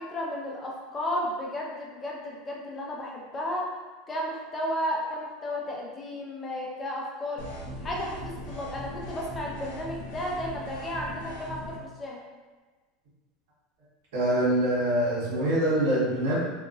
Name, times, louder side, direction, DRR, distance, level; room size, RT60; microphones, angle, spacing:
voice 1, 0.0-3.7 4.1-7.5 7.8-12.2, left 1 dB, 25° left, -3 dB, 0.6 m, -33 dB
sound 1, 7.4-11.8, equal, 90° left, 0.6 m, -39 dB
voice 2, 14.1-16.4, right 1 dB, 80° right, -8 dB, 1.3 m, -24 dB
2.9 x 2.4 x 2.4 m, 1.3 s
supercardioid pair, 110°, 0 cm